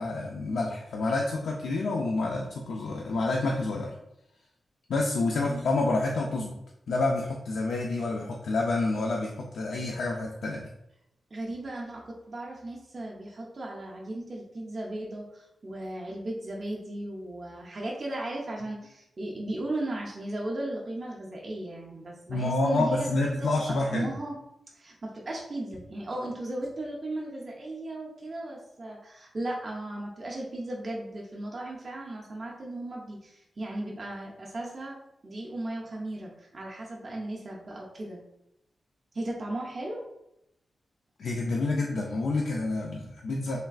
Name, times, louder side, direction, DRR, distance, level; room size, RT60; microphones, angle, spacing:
voice 1, 0.0-4.0 4.9-6.5 6.9-10.7 22.3-24.1 41.2-43.6, left 2 dB, 90° left, -1 dB, 0.3 m, -28 dB
voice 2, 5.3-5.6 11.3-24.4 24.7-38.2 39.1-40.0, right 1 dB, 35° right, -3 dB, 0.4 m, -36 dB
3.2 x 2.3 x 2.3 m, 0.83 s
wide cardioid pair, 160°, 0 cm